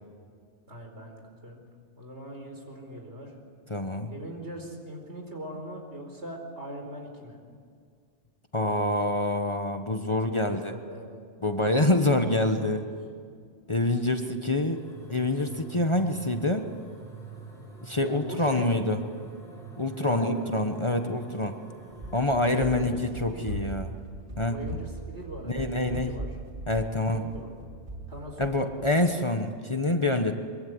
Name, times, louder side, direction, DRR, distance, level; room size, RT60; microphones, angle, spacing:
voice 1, 0.7-1.6 2.0-3.3 4.1-7.4 10.1-11.3 18.0-18.7 20.0-20.6 22.5-23.5 24.5-26.3 26.9-27.5 28.1-28.7, right 1 dB, 65° right, 2 dB, 4.9 m, -41 dB
voice 2, 3.7-4.1 8.5-10.7 11.4-12.8 13.7-14.8 15.1-16.7 17.8-19.0 19.8-21.6 22.1-23.9 24.4-24.6 25.4-26.1 26.7-27.2 28.4-30.3, left 2 dB, 25° left, 5 dB, 1.2 m, -26 dB
sound 1, 14.7-22.3, right 3 dB, ahead, 6.6 m, -46 dB
Run, 22.0-29.0, right 1 dB, 45° right, 2.2 m, -40 dB
24.0 x 23.5 x 9.5 m, 2.1 s
omnidirectional pair, 1.2 m